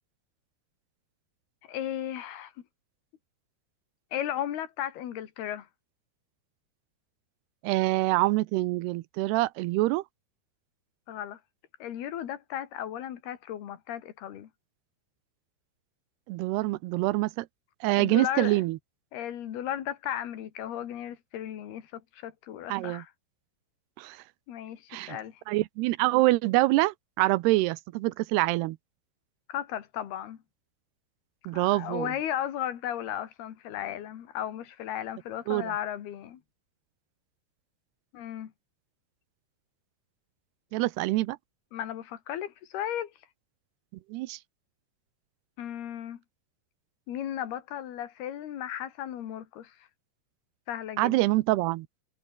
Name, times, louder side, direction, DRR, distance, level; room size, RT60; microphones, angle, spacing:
voice 1, 1.7-2.5 4.1-5.7 11.1-11.4 11.8-14.5 17.9-18.6 19.1-23.1 24.5-25.4 29.5-30.4 31.5-36.4 38.1-38.5 41.7-43.1 45.6-46.2 47.1-49.9 50.7-51.2, left 11 dB, 75° left, 4.2 m, -35 dB
voice 2, 7.6-10.0 16.3-17.5 17.8-18.8 22.7-23.0 24.0-24.2 24.9-25.2 25.5-28.8 31.5-32.1 35.5-35.7 40.7-41.4 44.1-44.4 51.0-51.9, right 19 dB, 85° right, 2.8 m, -25 dB
omnidirectional pair, 4.6 m